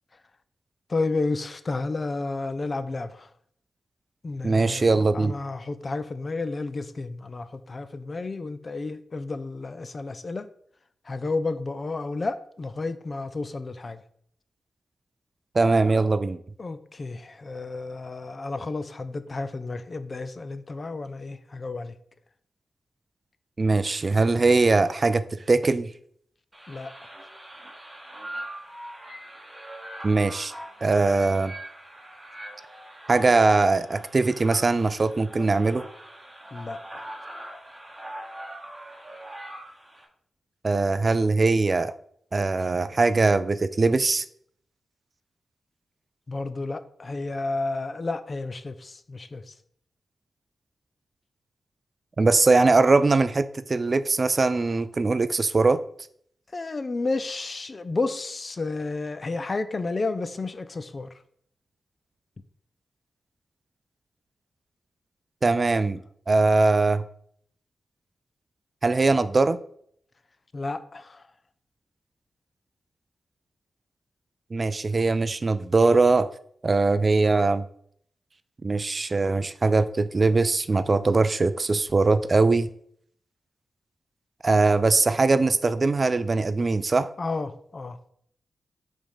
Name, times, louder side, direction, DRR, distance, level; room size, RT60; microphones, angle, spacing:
voice 1, 0.9-3.3 4.2-4.9 5.1-10.5 11.1-14.0 16.6-21.9 26.7-26.9 36.5-37.0 46.3-49.5 56.5-61.1 70.5-71.2 87.2-88.0, left 3 dB, 40° left, 13 dB, 0.5 m, -31 dB
voice 2, 4.4-5.3 15.5-16.4 23.6-25.9 30.0-30.5 30.8-31.5 33.1-35.8 40.6-41.9 42.3-44.2 52.2-55.8 65.4-67.0 68.8-69.6 74.5-76.3 76.6-77.7 78.6-82.7 84.4-87.1, right 3 dB, 40° right, 14 dB, 0.3 m, -21 dB
sound 1, 26.5-40.0, right 1 dB, 15° right, 1.3 m, -41 dB
5.1 x 3.5 x 5.5 m, 0.65 s
cardioid pair, 75°, 0 cm